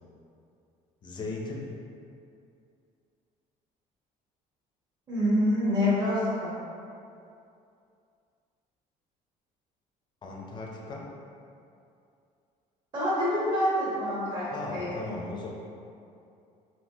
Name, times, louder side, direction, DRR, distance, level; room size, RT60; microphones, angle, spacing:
voice 1, 1.0-1.7 10.2-11.1 14.5-15.5, left 3 dB, 30° left, -2 dB, 0.5 m, -37 dB
voice 2, 5.1-6.5 12.9-15.0, left 1 dB, 30° right, -10 dB, 1.2 m, -26 dB
3.3 x 2.7 x 2.7 m, 2.5 s
cardioid pair, 150°, 15 cm